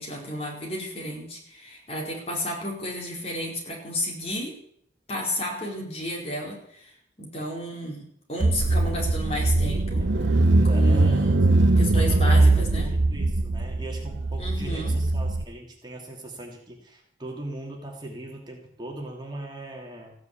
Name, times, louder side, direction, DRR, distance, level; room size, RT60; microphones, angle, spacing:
voice 1, 0.0-4.5 5.1-6.9 7.2-10.0 10.6-11.4 11.8-12.9 14.4-14.9, left 1 dB, 35° left, -1 dB, 4.6 m, -32 dB
Car / Engine, 8.4-15.4, right 2 dB, 85° right, 0.8 m, -21 dB
voice 2, 10.5-20.1, right 1 dB, 25° right, 0 dB, 2.7 m, -39 dB
15.5 x 9.5 x 8.6 m, 0.69 s
head